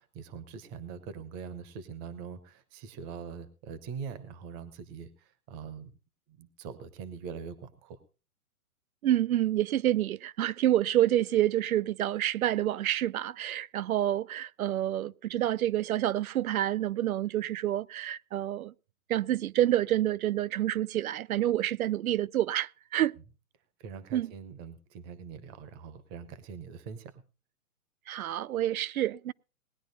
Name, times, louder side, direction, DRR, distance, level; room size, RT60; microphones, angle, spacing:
voice 1, 0.0-5.9 6.3-8.0 23.8-27.2, right 6 dB, 15° right, 0.7 m, -43 dB
voice 2, 9.0-18.7 19.1-23.2 24.1-24.3 28.1-29.3, right 12 dB, 70° right, 0.6 m, -28 dB
19.0 x 10.0 x 4.0 m
hypercardioid pair, 155°, 44 cm